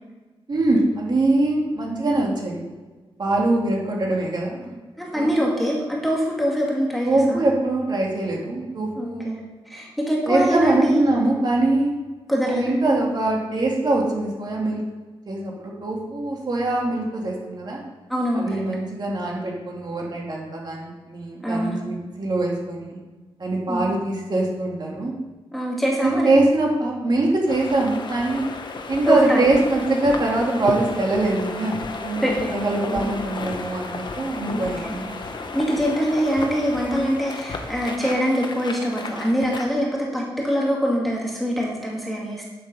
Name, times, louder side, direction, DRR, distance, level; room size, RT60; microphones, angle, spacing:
voice 1, 0.5-2.6 3.2-4.7 5.2-5.3 7.0-9.3 10.3-11.9 12.5-14.8 15.3-17.8 18.3-23.0 23.4-25.1 26.0-28.5 28.9-31.7 32.0-35.2, right 2 dB, 45° right, -2 dB, 2.4 m, -23 dB
voice 2, 5.0-7.4 9.0-9.4 9.7-11.0 12.3-12.7 18.1-18.6 21.4-22.0 23.7-23.9 25.5-26.3 29.0-29.5 32.2-33.1 34.5-35.0 35.5-42.5, equal, ahead, -4 dB, 2.2 m, -24 dB
sound 1, 27.5-39.7, left 3 dB, 50° left, 1.0 m, -33 dB
9.5 x 7.8 x 5.4 m, 1.3 s
wide cardioid pair, 145°, 10 cm